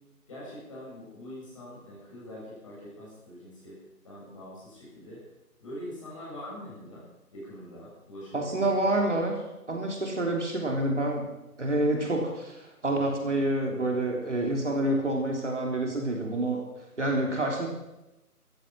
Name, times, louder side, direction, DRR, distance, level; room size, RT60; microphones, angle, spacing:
voice 1, 0.3-3.8 4.0-5.2 5.6-7.0 7.3-8.8, equal, 20° left, -7 dB, 7.7 m, -43 dB
voice 2, 8.3-9.4 9.7-11.3 11.6-16.6 17.0-17.7, right 1 dB, 50° right, 1 dB, 3.4 m, -27 dB
14.5 x 14.5 x 6.1 m, 0.98 s
figure-of-eight pair, 175°, 46 cm